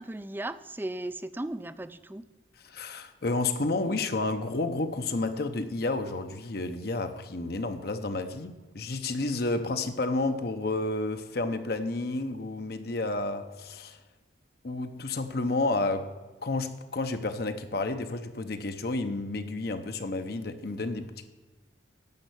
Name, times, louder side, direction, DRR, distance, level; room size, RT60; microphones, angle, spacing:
voice 1, 0.0-2.2, right 1 dB, 10° right, 0.4 m, -36 dB
voice 2, 2.6-14.0 14.6-16.1 16.4-21.3, left 2 dB, 55° left, 0.8 m, -31 dB
10.5 x 6.7 x 8.2 m
head